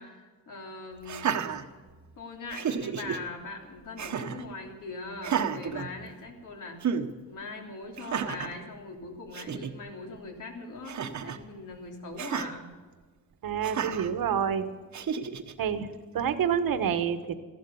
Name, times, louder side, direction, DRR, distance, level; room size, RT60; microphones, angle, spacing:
voice 1, 0.0-1.4 2.2-6.8 7.2-12.7, left 3 dB, 60° left, 2 dB, 3.4 m, -41 dB
Laughter, 1.0-2.1 2.5-3.2 4.0-4.5 5.2-6.4 6.8-7.1 8.0-8.6 9.1-9.2 9.3-9.7 10.8-11.4 12.2-12.5 13.6-14.1 14.9-15.5, right 7 dB, 55° right, 1.1 m, -32 dB
voice 2, 13.4-14.7 15.6-15.9 16.1-17.4, right 8 dB, 75° right, 10 dB, 1.3 m, -28 dB
15.0 x 12.0 x 7.0 m, 1.4 s
wide cardioid pair, 135°, 34 cm